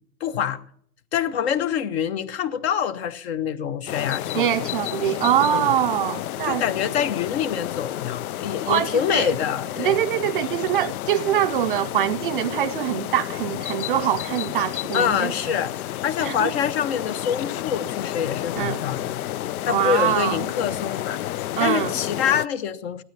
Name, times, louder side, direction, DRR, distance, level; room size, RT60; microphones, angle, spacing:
voice 1, 0.2-0.6 1.1-4.7 5.4-5.7 6.4-10.0 14.9-19.2 19.6-21.2 21.6-23.0, left 8 dB, 40° left, 1.0 m, -26 dB
sound 1, 3.9-22.5, left 13 dB, 65° left, 0.6 m, -31 dB
voice 2, 4.3-6.6 8.7-9.3 9.8-15.3 16.2-16.5 18.5-18.8 19.7-20.5 21.6-21.9, right 11 dB, 35° right, 0.5 m, -23 dB
16.5 x 12.5 x 5.7 m
supercardioid pair, 160°, 48 cm